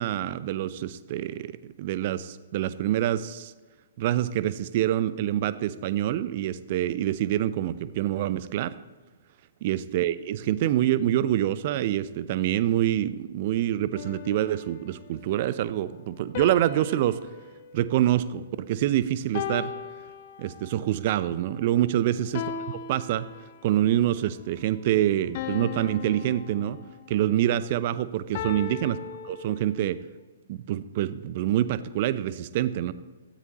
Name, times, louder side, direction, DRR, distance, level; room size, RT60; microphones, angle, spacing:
voice 1, 0.0-3.5 4.0-8.8 9.6-17.2 17.7-19.7 20.4-23.3 23.6-26.8 27.1-29.0 29.2-30.0 30.5-32.9, right 12 dB, 40° right, 15 dB, 0.6 m, -26 dB
sound 1, 13.9-15.2 16.3-18.8 19.3-20.8 22.3-23.8 25.3-27.2 28.3-30.0, left 7 dB, 40° left, 0.8 m, -38 dB
16.5 x 13.0 x 3.0 m, 1.3 s
figure-of-eight pair, 120°, 0 cm